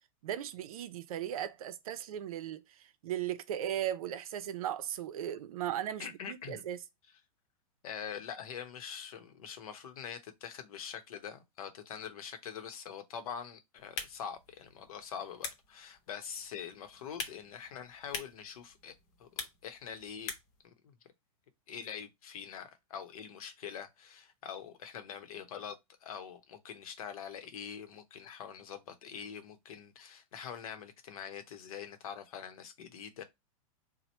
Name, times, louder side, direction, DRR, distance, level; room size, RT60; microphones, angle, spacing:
voice 1, 0.2-2.6 3.0-6.8, right 11 dB, 75° right, 0.5 m, -37 dB
voice 2, 6.0-6.6 7.8-18.9 19.2-20.3 20.6-20.9 21.7-33.2, left 8 dB, 75° left, 0.8 m, -44 dB
sound 1, 13.8-20.7, left 5 dB, 50° left, 0.9 m, -46 dB
2.9 x 2.1 x 4.2 m
supercardioid pair, 135°, 18 cm